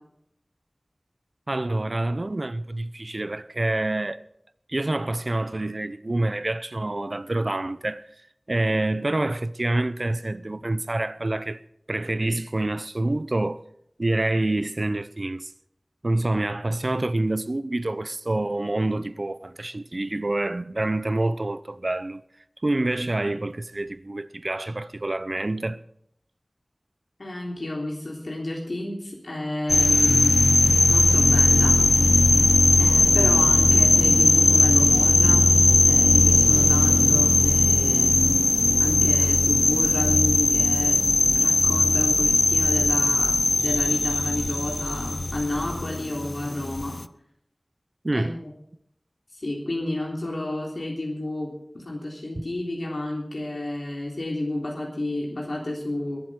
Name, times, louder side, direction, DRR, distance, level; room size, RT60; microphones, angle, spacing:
voice 1, 1.5-4.2 4.7-8.0 8.5-11.6 11.9-13.6 14.0-15.5 16.0-22.2 22.6-25.8 48.0-48.4 52.4-52.5, right 2 dB, 55° right, 0.7 m, -27 dB
voice 2, 27.2-30.4 30.9-31.8 32.8-35.5 35.9-47.0 48.1-48.5 49.3-56.2, left 1 dB, 80° left, 3.5 m, -31 dB
sound 1, 29.7-47.0, left 2 dB, 55° left, 0.6 m, -19 dB
22.0 x 7.9 x 6.4 m
wide cardioid pair, 50°, 0 cm